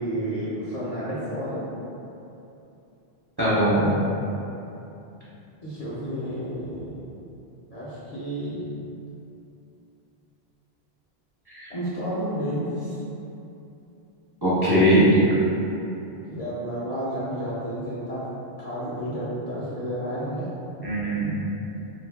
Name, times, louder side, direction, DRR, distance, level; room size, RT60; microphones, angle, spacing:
voice 1, 0.0-1.7 5.6-7.0 7.7-8.6 11.7-13.0 16.3-18.2 18.6-20.5, equal, 50° left, -9 dB, 0.5 m, -31 dB
voice 2, 3.4-3.9 11.5-11.7 14.4-15.2 20.8-21.3, equal, 30° right, -11 dB, 0.5 m, -20 dB
2.6 x 2.4 x 3.3 m, 2.8 s
omnidirectional pair, 1.1 m